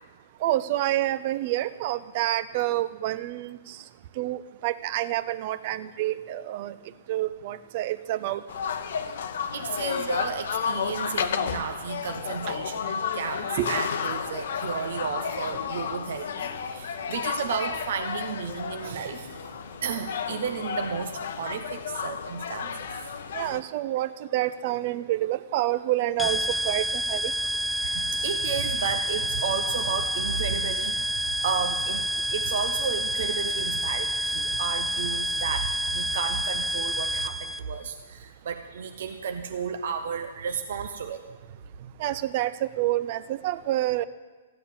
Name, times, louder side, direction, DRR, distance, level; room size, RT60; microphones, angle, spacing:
voice 1, 0.4-3.6 4.2-6.7 7.1-8.4 13.6-13.7 23.3-27.3 42.0-44.1, right 14 dB, 45° right, 15 dB, 0.7 m, -28 dB
sound 1, 8.5-23.6, left 7 dB, 65° left, 0.9 m, -32 dB
voice 2, 9.5-19.4 19.8-22.8 27.8-41.3 41.8-41.9, right 6 dB, 65° right, 7 dB, 0.9 m, -33 dB
sound 2, 26.2-37.6, right 1 dB, 10° left, 0.6 m, -28 dB
14.0 x 9.8 x 7.2 m, 1.3 s
hypercardioid pair, 130°, 0 cm